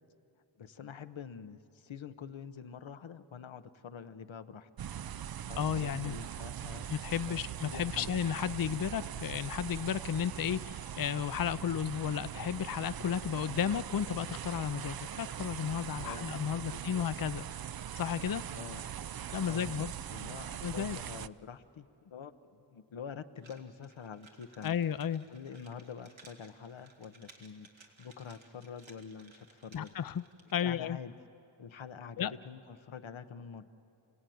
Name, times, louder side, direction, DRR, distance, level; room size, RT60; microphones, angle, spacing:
voice 1, 0.6-4.7 5.4-6.9 7.2-8.1 16.0-17.1 18.5-18.8 19.4-24.8 25.3-27.7 28.0-29.9 30.6-31.1 31.6-33.7, left 7 dB, 85° left, 10 dB, 0.9 m, -46 dB
sound 1, 4.8-21.3, right 9 dB, 55° right, 0.5 m, -41 dB
voice 2, 5.6-6.2 6.9-17.4 18.0-18.4 19.3-19.9 20.6-21.0 24.6-25.2 29.7-30.2 30.5-31.0 32.2-32.3, left 8 dB, 50° left, 14 dB, 0.6 m, -33 dB
sound 2, 23.4-30.9, right 3 dB, 80° right, 2.2 m, -60 dB
28.5 x 17.0 x 9.3 m, 2.7 s
wide cardioid pair, 65°, 46 cm